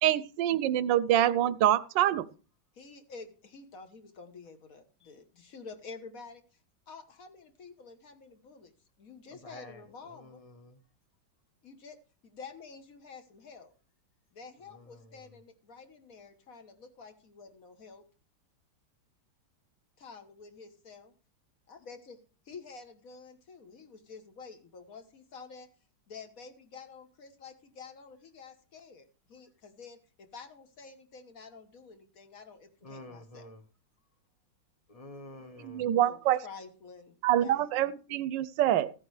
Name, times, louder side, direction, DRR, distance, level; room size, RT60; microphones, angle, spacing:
voice 1, 0.0-2.3 35.6-36.4 37.2-38.9, right 12 dB, 75° right, 1.3 m, -26 dB
voice 2, 2.7-6.4 6.9-8.7 9.0-10.4 11.6-12.0 12.2-13.7 14.3-18.0 20.0-21.1 21.7-22.2 22.5-25.7 26.1-33.5 36.0-37.7, left 4 dB, 50° left, 1.6 m, -49 dB
voice 3, 9.4-9.8 10.2-10.8 32.8-33.6 34.9-35.8, left 1 dB, 25° left, 0.8 m, -48 dB
15.0 x 8.8 x 3.2 m
omnidirectional pair, 2.1 m